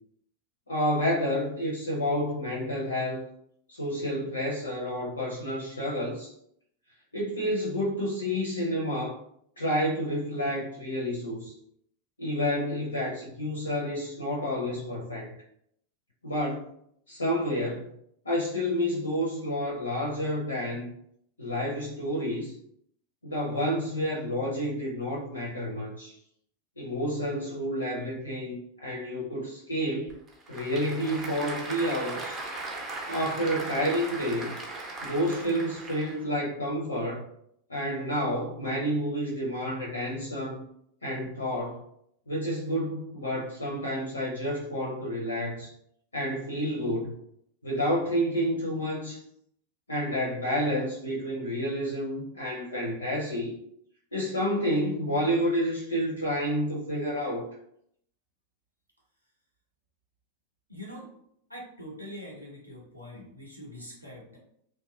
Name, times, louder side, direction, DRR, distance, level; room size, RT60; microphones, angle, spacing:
voice 1, 0.7-3.2 3.7-6.3 7.1-9.2 9.6-11.5 12.2-15.4 16.2-16.7 17.1-17.9 18.2-20.9 21.4-22.5 23.2-26.1 26.8-30.2 30.5-32.4 33.1-34.6 35.0-37.2 37.7-40.6 41.0-41.8 42.3-45.7 46.1-47.1 47.6-49.2 49.9-53.5 54.1-57.5, equal, 80° left, -4 dB, 0.5 m, -29 dB
Applause / Crowd, 30.1-36.3, right 2 dB, 25° right, 0.5 m, -38 dB
voice 2, 60.7-61.1 61.5-64.4, equal, 85° right, -3 dB, 0.7 m, -43 dB
2.7 x 2.3 x 2.2 m, 0.72 s
figure-of-eight pair, 90°, 0 cm